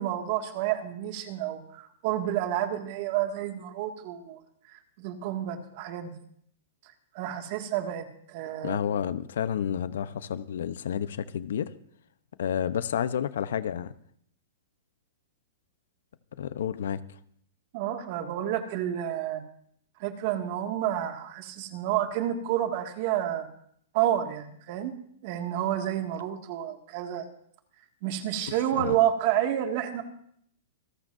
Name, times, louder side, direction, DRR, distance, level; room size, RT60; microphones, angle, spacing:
voice 1, 0.0-4.4 4.7-6.2 6.8-8.8 17.7-19.4 20.0-23.5 23.9-24.9 25.2-27.3 28.0-30.0, right 11 dB, 45° right, 4 dB, 2.1 m, -30 dB
voice 2, 8.6-11.7 12.4-13.9 16.4-17.0 28.8-29.0, left 9 dB, 75° left, 14 dB, 0.8 m, -30 dB
27.0 x 13.5 x 2.7 m, 0.66 s
hypercardioid pair, 150°, 0 cm